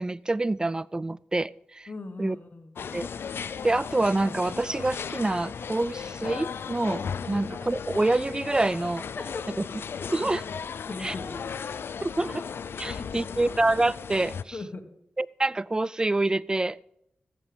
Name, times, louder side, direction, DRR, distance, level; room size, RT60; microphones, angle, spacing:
voice 1, 0.0-1.9 2.2-2.4 2.9-3.1 3.6-9.1 9.5-9.8 10.1-10.4 11.0-11.2 12.0-12.4 12.8-14.7 15.2-16.8, right 2 dB, 20° right, 21 dB, 0.3 m, -27 dB
voice 2, 1.9-2.8 7.2-7.4 9.2-9.6 10.0-10.3 10.9-11.7 12.8-13.4 14.5-14.8, left 3 dB, 55° left, 5 dB, 1.5 m, -39 dB
sound 1, 2.8-14.4, left 6 dB, 85° left, 0.5 m, -36 dB
14.5 x 7.6 x 5.1 m, 0.75 s
cardioid pair, 55°, 4 cm